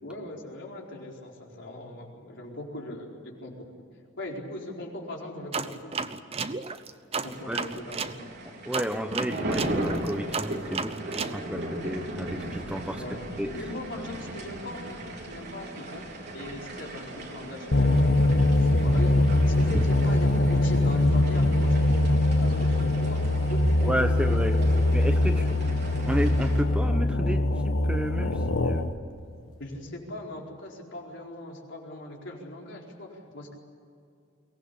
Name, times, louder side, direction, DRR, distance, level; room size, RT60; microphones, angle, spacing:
voice 1, 0.0-3.7 4.2-5.9 7.2-8.3 12.9-13.3 13.5-16.1 16.3-25.6 29.6-33.6, left 1 dB, 65° left, -1 dB, 4.5 m, -39 dB
sound 1, 5.5-8.2 8.7-11.4, right 4 dB, 30° right, 0.9 m, -33 dB
sound 2, 7.1-26.6, right 1 dB, 60° right, 4.0 m, -38 dB
voice 2, 8.7-13.0 13.4-13.5 19.7-19.8 23.8-24.6 24.9-25.4 26.0-28.8, equal, 5° right, 7 dB, 0.9 m, -31 dB
sound 3, 17.7-29.0, left 1 dB, 85° left, 1.4 m, -23 dB
23.0 x 18.5 x 8.4 m, 2.4 s
head